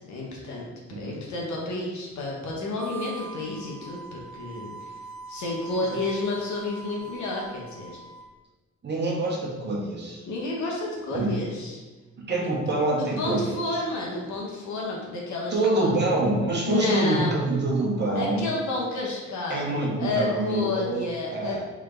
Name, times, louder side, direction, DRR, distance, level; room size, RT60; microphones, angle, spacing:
voice 1, 0.0-4.9 5.3-8.0 10.2-11.8 12.4-12.5 13.0-15.9 16.6-17.4 18.1-21.6, left 2 dB, 70° left, -3 dB, 1.3 m, -30 dB
Harmonica, 2.6-8.3, right 3 dB, 60° right, 0.8 m, -42 dB
voice 2, 8.8-10.2 11.1-11.4 12.2-13.6 15.5-18.4 19.5-21.0 21.3-21.6, right 2 dB, 35° right, -3 dB, 1.2 m, -26 dB
3.7 x 3.3 x 3.8 m, 1.3 s
cardioid pair, 90°, 30 cm